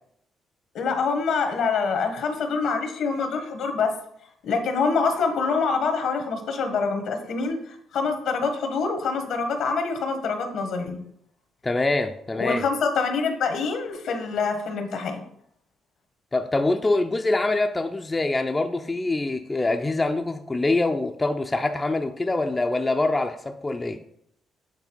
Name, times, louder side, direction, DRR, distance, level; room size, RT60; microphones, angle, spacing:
voice 1, 0.7-3.9 4.4-11.0 12.4-15.2, left 4 dB, 75° left, 6 dB, 1.2 m, -25 dB
voice 2, 11.6-12.6 16.3-24.0, left 2 dB, 20° left, 5 dB, 0.5 m, -24 dB
8.1 x 3.3 x 4.5 m, 0.71 s
cardioid pair, 90°, 0 cm